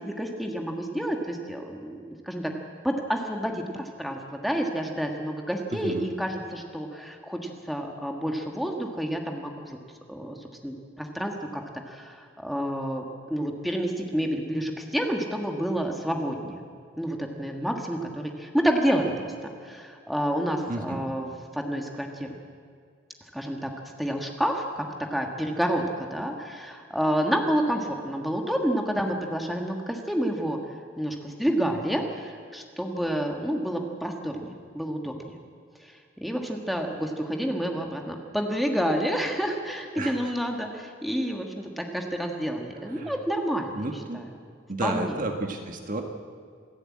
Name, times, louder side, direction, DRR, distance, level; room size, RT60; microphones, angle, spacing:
voice 1, 0.0-2.5 2.8-9.8 10.1-10.4 10.6-11.6 11.9-13.0 13.3-16.6 17.0-22.3 23.3-23.7 24.0-24.8 25.1-30.6 31.0-35.4 35.8-35.9 36.2-44.3 44.8-45.2, equal, ahead, 1 dB, 1.6 m, -29 dB
voice 2, 5.7-6.1 20.7-21.0 40.0-40.2 42.8-43.1 43.8-44.2 44.7-46.0, right 2 dB, 40° right, 3 dB, 1.6 m, -32 dB
27.5 x 11.5 x 8.6 m, 2.2 s
head